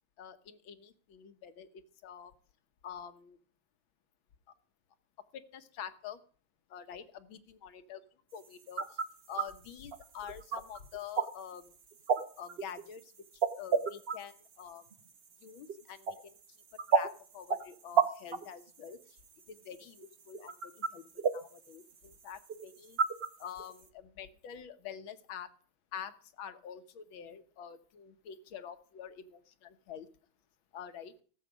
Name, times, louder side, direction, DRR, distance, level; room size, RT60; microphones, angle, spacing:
voice 1, 0.2-2.3 2.8-3.4 5.3-6.2 6.7-8.0 8.3-9.0 9.3-11.7 12.4-13.1 13.6-14.8 15.4-16.4 16.9-19.2 19.5-23.0 23.4-25.5 25.9-30.1 30.7-31.1, left 8 dB, 70° left, 10 dB, 1.8 m, -47 dB
sound 1, 8.4-23.8, right 6 dB, 50° right, 0.7 m, -34 dB
17.0 x 7.6 x 5.1 m, 0.43 s
omnidirectional pair, 2.3 m